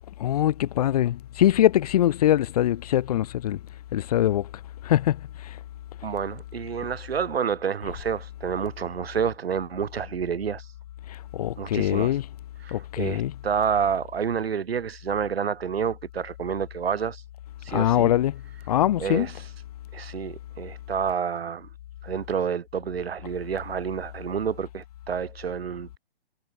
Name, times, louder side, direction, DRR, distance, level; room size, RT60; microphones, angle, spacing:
voice 1, 0.2-3.6 3.9-4.5 4.8-5.6 11.1-12.3 12.7-13.3 17.7-18.4 18.7-19.3, left 12 dB, 40° left, 2.2 m, -23 dB
voice 2, 6.0-10.6 11.6-12.1 12.6-17.2 17.6-18.1 19.0-19.3 19.9-21.7 22.0-26.0, right 7 dB, 80° right, 6.7 m, -29 dB
hypercardioid pair, 170°, 30 cm